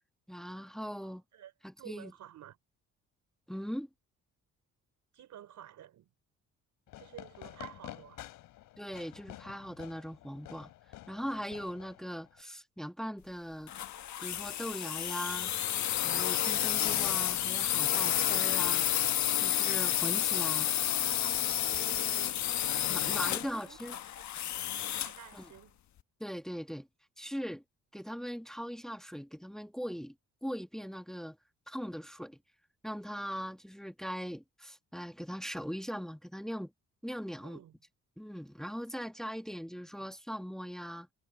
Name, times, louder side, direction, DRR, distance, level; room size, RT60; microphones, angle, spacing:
voice 1, 0.3-1.2 1.6-2.1 3.5-3.9 8.8-10.7 11.1-13.9 14.2-15.5 16.0-18.8 19.4-20.7 22.9-24.0 25.3-25.5 26.2-26.9 27.2-27.6 27.9-30.1 30.4-31.4 31.7-32.4 32.8-36.7 37.0-37.6 38.2-41.1, equal, ahead, 1.5 m, -40 dB
voice 2, 1.0-1.5 1.8-2.6 5.1-6.1 7.0-8.2 20.2-22.5 23.2-24.5 25.0-25.8 37.4-37.7, right 11 dB, 75° right, 4.2 m, -52 dB
Fireworks, 6.9-12.4, left 15 dB, 90° left, 3.7 m, -50 dB
sound 1, 13.7-25.2, left 11 dB, 65° left, 1.3 m, -30 dB
cardioid pair, 90°, 30 cm